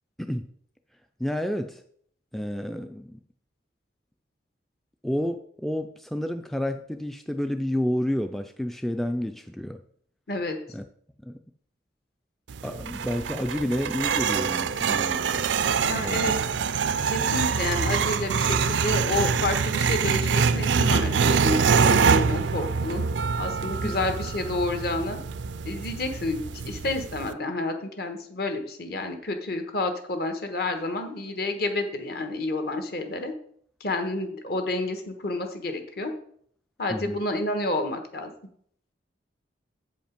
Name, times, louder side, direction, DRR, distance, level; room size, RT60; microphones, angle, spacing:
voice 1, 1.2-1.8 2.3-3.2 5.0-9.8 10.7-10.8 11.3-11.4 12.6-15.4 16.0-16.3 23.8-23.9 36.9-37.2, equal, ahead, 6 dB, 0.3 m, -30 dB
sound 1, 12.5-27.3, right 6 dB, 80° right, 0.4 m, -25 dB
voice 2, 15.8-16.3 17.1-23.0 23.4-25.2 25.6-33.3 33.8-36.1 36.8-38.3, left 2 dB, 55° left, 6 dB, 1.2 m, -29 dB
7.8 x 5.2 x 5.1 m, 0.63 s
head